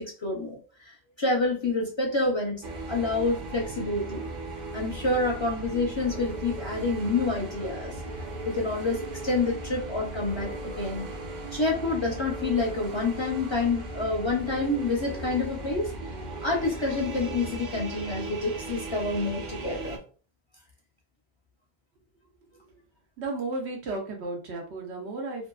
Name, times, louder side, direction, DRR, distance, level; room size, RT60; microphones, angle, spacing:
voice 1, 0.0-4.2 4.7-8.0 8.4-11.1 11.5-15.9 16.4-20.0, left 3 dB, 40° left, -2 dB, 0.4 m, -28 dB
sound 1, 2.6-20.0, right 2 dB, 55° right, 0.6 m, -37 dB
voice 2, 23.2-25.5, right 2 dB, 90° right, 1 dB, 1.1 m, -33 dB
2.7 x 2.5 x 2.3 m, 0.39 s
omnidirectional pair, 1.1 m